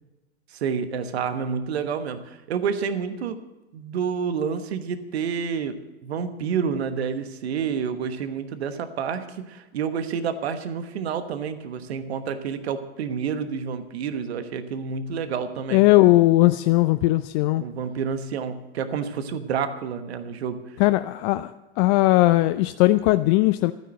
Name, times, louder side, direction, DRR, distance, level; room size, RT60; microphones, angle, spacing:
voice 1, 0.5-3.4 3.7-15.8 17.6-20.6, right 6 dB, 70° right, 10 dB, 1.3 m, -29 dB
voice 2, 15.7-17.6 20.8-23.7, left 18 dB, 45° left, 12 dB, 0.5 m, -19 dB
13.0 x 9.9 x 7.6 m, 1.1 s
figure-of-eight pair, 90°, 33 cm